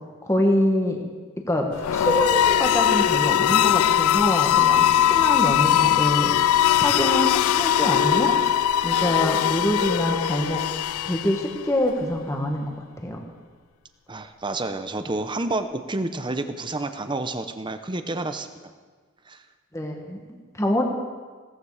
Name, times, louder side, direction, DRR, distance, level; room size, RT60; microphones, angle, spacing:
voice 1, 0.2-1.0 1.4-6.3 6.8-8.3 8.8-10.6 11.0-12.7 13.0-13.2 19.7-20.2 20.5-20.8, left 1 dB, 15° left, 1 dB, 1.5 m, -25 dB
sound 1, 1.8-11.7, left 11 dB, 85° left, 0.3 m, -20 dB
voice 2, 14.1-18.5 19.3-19.4, right 2 dB, 20° right, 9 dB, 0.8 m, -29 dB
17.5 x 14.5 x 4.9 m, 1.5 s
head